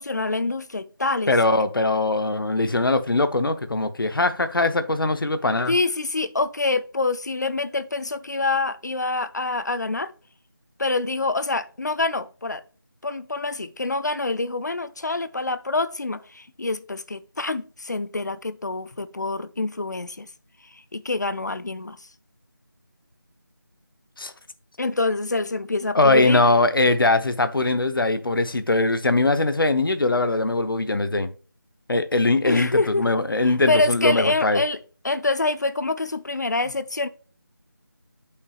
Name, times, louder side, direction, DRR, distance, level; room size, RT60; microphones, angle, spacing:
voice 1, 0.0-1.3 5.7-10.1 10.8-12.6 13.0-20.3 20.7-22.1 24.8-26.4 32.4-33.1 33.4-34.8 35.0-37.1, left 3 dB, 55° left, 0.5 m, -26 dB
voice 2, 1.3-5.7 24.2-24.3 25.9-31.3 31.9-34.6, left 2 dB, 75° left, 0.8 m, -21 dB
8.2 x 5.7 x 2.3 m
figure-of-eight pair, 175°, 12 cm